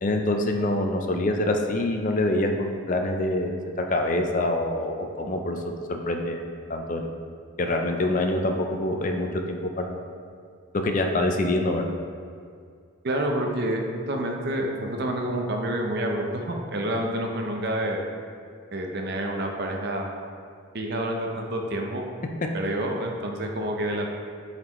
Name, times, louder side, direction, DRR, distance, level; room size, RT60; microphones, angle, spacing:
voice 1, 0.0-5.6 5.9-7.1 7.6-10.0 10.7-11.9, left 1 dB, 40° left, 4 dB, 0.5 m, -25 dB
voice 2, 13.0-18.0 18.7-20.1 20.7-22.0 22.5-24.1, right 1 dB, 50° right, 2 dB, 0.6 m, -28 dB
7.5 x 4.2 x 3.0 m, 2.2 s
head